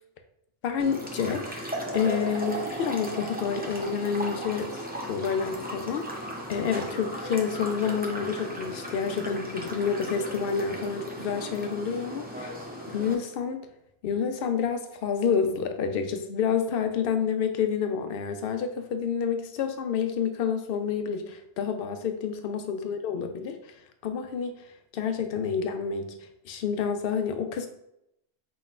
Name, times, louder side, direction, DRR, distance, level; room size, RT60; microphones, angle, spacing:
voice 1, 0.6-4.8 5.1-12.5 12.9-13.6 14.0-23.6 24.0-24.6 24.9-26.1 26.4-27.7, left 6 dB, 65° left, 7 dB, 0.7 m, -29 dB
sound 1, 0.8-13.2, equal, 15° right, 0.3 m, -36 dB
5.5 x 3.0 x 2.4 m, 0.80 s
omnidirectional pair, 1.1 m